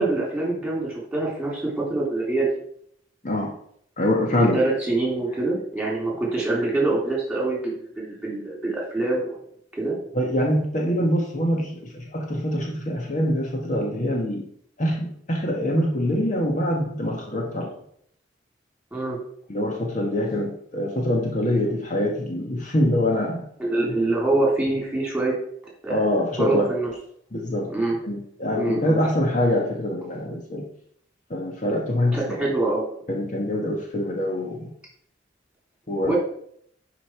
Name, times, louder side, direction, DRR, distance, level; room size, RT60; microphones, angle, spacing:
voice 1, 0.0-2.5 4.3-9.3 9.8-10.0 18.9-19.2 23.6-25.3 25.8-26.0 26.4-26.9 27.7-28.0 28.5-29.0 32.1-32.8 36.0-36.2, right 2 dB, 5° right, -3 dB, 3.1 m, -25 dB
voice 2, 4.0-4.6 10.1-14.4 14.8-17.7 19.5-23.5 25.9-26.7 27.3-27.7 28.0-30.7 31.3-32.2 33.1-34.7 35.9-36.1, left 1 dB, 40° left, 0 dB, 1.3 m, -24 dB
11.0 x 5.1 x 4.5 m, 0.67 s
head